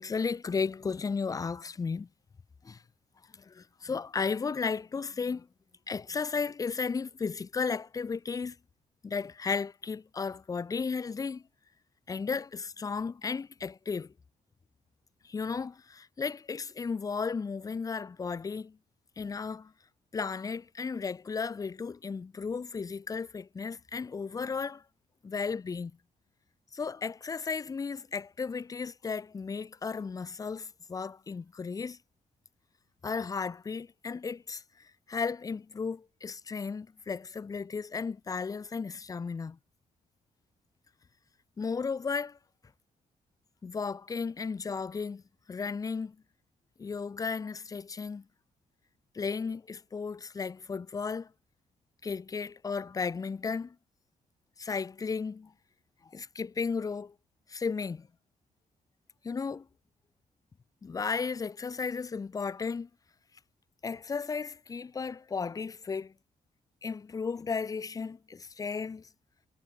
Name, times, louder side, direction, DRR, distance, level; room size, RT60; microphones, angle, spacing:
voice 1, 0.0-2.1 2.6-2.8 3.5-5.5 5.9-8.6 9.0-11.4 12.1-14.1 15.2-18.8 19.2-19.7 20.1-24.8 25.2-25.9 26.7-32.0 33.0-34.6 35.1-39.6 41.6-42.4 43.6-45.2 45.5-46.2 46.8-48.2 49.1-51.3 52.0-53.8 54.6-55.5 56.0-57.1 57.5-58.1 59.2-59.7 60.8-62.9 63.8-66.1 66.8-69.1, left 5 dB, 25° left, 0.6 m, -34 dB
cardioid pair, 145°, 15 cm